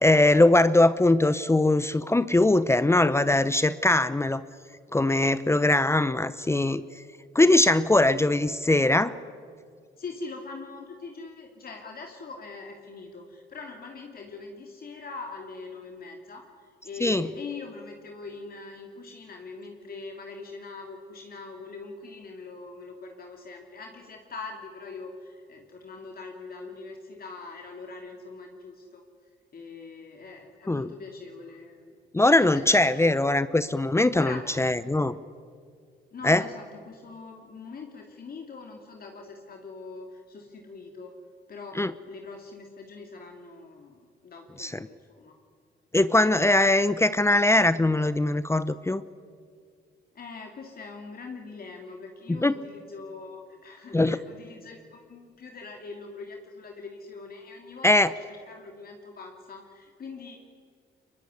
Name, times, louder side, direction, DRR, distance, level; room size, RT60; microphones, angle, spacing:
voice 1, 0.0-4.4 4.9-6.8 7.3-9.1 17.0-17.3 30.7-30.9 32.1-35.2 36.2-36.4 41.8-41.9 44.6-44.7 45.9-49.0 52.3-52.5 53.9-54.2 57.8-58.1, left 2 dB, 15° left, 14 dB, 0.8 m, -21 dB
voice 2, 10.0-29.0 29.5-31.9 32.4-33.3 34.1-34.5 36.1-41.1 41.5-45.3 50.1-60.4, left 4 dB, 50° left, 2 dB, 3.0 m, -42 dB
23.5 x 22.0 x 9.8 m, 2.1 s
cardioid pair, 90°, 20 cm